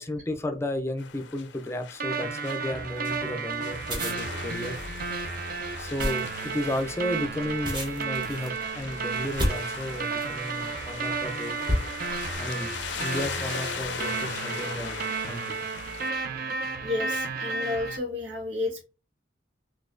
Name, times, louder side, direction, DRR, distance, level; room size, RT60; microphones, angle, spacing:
voice 1, 0.0-4.8 5.8-11.6 12.4-12.7 13.0-15.6, left 1 dB, 15° left, 7 dB, 0.4 m, -33 dB
sound 1, 1.0-16.1, left 6 dB, 65° left, 0.5 m, -40 dB
sound 2, 2.0-18.0, right 4 dB, 50° right, 0.5 m, -33 dB
sound 3, 3.8-10.4 11.1-11.3 11.7-12.4, equal, 25° right, 0.9 m, -32 dB
voice 2, 5.2-5.5 10.9-11.0 11.9-12.1 16.0-18.8, left 2 dB, 90° right, 0 dB, 1.4 m, -33 dB
4.0 x 2.6 x 2.5 m, 0.32 s
head